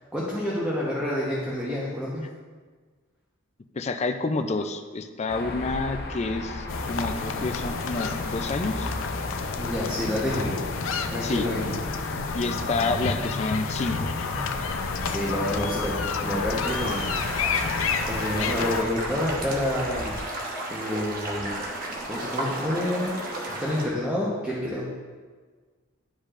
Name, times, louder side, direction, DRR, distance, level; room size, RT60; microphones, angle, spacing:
voice 1, 0.1-2.2 9.6-10.6 11.1-11.7 15.0-17.1 18.1-20.2 20.7-21.5 22.0-23.2 23.6-24.8, left 1 dB, 5° right, -7 dB, 1.0 m, -28 dB
voice 2, 3.7-8.9 11.2-11.5 12.3-14.1, left 3 dB, 35° left, 7 dB, 0.4 m, -29 dB
sound 1, 5.3-20.2, left 1 dB, 55° left, 0.8 m, -36 dB
sound 2, 6.7-18.8, left 5 dB, 85° left, 0.5 m, -30 dB
sound 3, 16.6-23.8, right 1 dB, 45° right, 1.1 m, -33 dB
11.5 x 5.2 x 2.5 m, 1.5 s
head